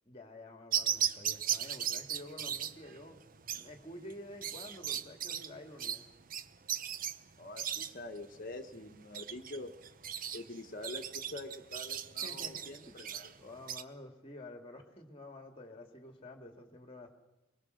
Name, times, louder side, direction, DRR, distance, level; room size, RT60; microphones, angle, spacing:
voice 1, 0.1-3.2 3.5-6.1 12.2-13.0 13.4-17.1, left 1 dB, 30° left, 5 dB, 2.3 m, -50 dB
sound 1, 0.7-13.8, right 9 dB, 45° right, 0.9 m, -37 dB
voice 2, 7.4-9.7 10.3-13.3, left 2 dB, 45° left, 5 dB, 1.4 m, -45 dB
22.5 x 22.0 x 6.6 m, 0.98 s
head